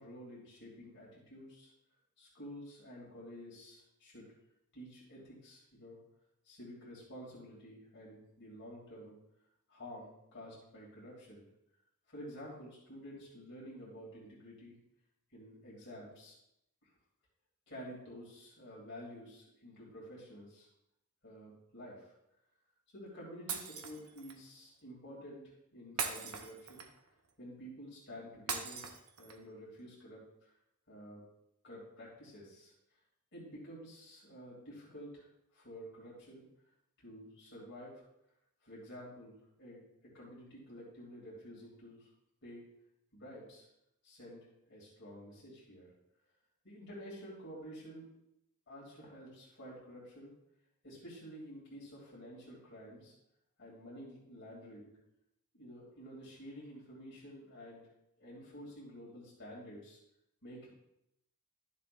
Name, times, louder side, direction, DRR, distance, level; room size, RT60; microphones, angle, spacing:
voice 1, 0.0-1.7 2.2-4.3 4.7-6.0 6.4-9.1 9.7-11.4 12.1-14.8 15.3-16.3 17.7-20.7 21.2-22.1 22.9-25.4 25.7-26.8 27.4-28.9 29.2-30.5 30.9-31.2 31.6-32.7 33.3-36.4 37.0-37.9 38.6-42.1 42.4-42.6 43.1-43.7 44.0-44.4 44.7-45.9 46.6-48.1 48.7-50.3 50.8-53.1 53.6-54.9 55.5-57.8 58.2-60.0 60.4-60.7, equal, 55° left, -5 dB, 3.0 m, -50 dB
Shatter, 23.5-24.4 26.0-27.1 28.5-29.5, right 6 dB, 80° right, 0.9 m, -40 dB
12.5 x 7.2 x 2.6 m, 0.82 s
head